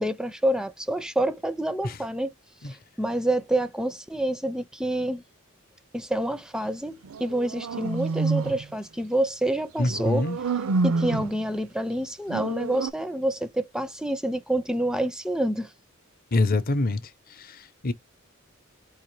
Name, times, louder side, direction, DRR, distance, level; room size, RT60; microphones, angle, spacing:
voice 1, 0.0-2.3 2.6-5.2 5.9-10.3 10.8-15.7, right 1 dB, 5° right, 0.4 m, -27 dB
sound 1, 7.0-8.6 9.9-11.4 12.3-12.9, right 4 dB, 80° right, 0.5 m, -28 dB
voice 2, 9.8-10.4 16.3-17.1 17.4-17.9, left 2 dB, 45° left, 0.7 m, -25 dB
4.7 x 2.8 x 3.1 m
head